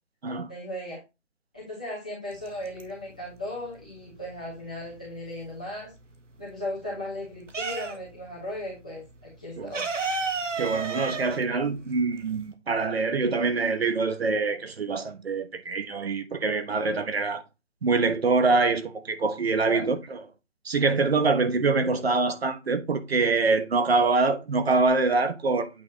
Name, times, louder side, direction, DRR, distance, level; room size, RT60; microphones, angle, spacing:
voice 1, 0.5-1.0 1.5-5.9 6.4-9.9 19.6-19.9, left 1 dB, 5° left, 0.8 m, -36 dB
sound 1, 2.3-3.2 3.6-5.5 5.9-8.3 8.5-8.7 9.0-12.5, right 4 dB, 85° right, 1.5 m, -32 dB
voice 2, 10.6-17.4 17.8-20.2 20.6-25.7, right 3 dB, 55° right, 1.1 m, -25 dB
8.6 x 4.4 x 3.2 m
hypercardioid pair, 175°, 36 cm